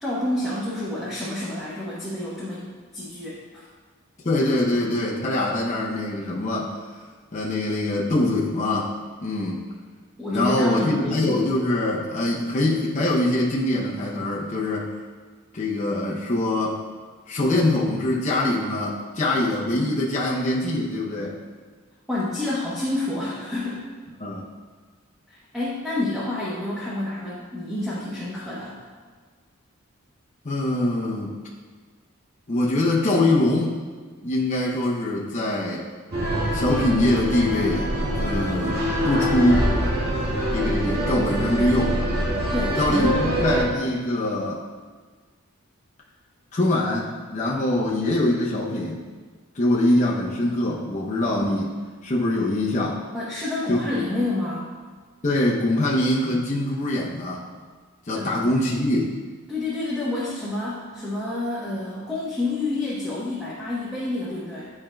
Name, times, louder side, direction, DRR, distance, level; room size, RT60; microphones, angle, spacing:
voice 1, 0.0-2.7 2.9-3.7 10.2-11.5 22.1-23.9 25.3-28.8 42.5-43.3 53.1-54.7 58.1-58.5 59.5-64.7, left 2 dB, ahead, -10 dB, 0.9 m, -28 dB
voice 2, 4.2-6.8 7.3-8.9 9.2-9.7 10.3-14.9 15.5-16.8 17.3-21.4 24.2-24.5 30.4-31.3 32.5-33.8 34.2-35.9 36.5-37.9 38.2-39.7 40.5-42.0 42.8-44.6 46.5-49.0 49.5-51.7 52.0-53.0 53.7-54.0 55.2-57.5 58.1-59.1, left 1 dB, 35° left, -4 dB, 0.6 m, -23 dB
sound 1, 36.1-43.6, equal, 45° right, 1.6 m, -24 dB
10.5 x 4.4 x 2.2 m, 1.5 s
head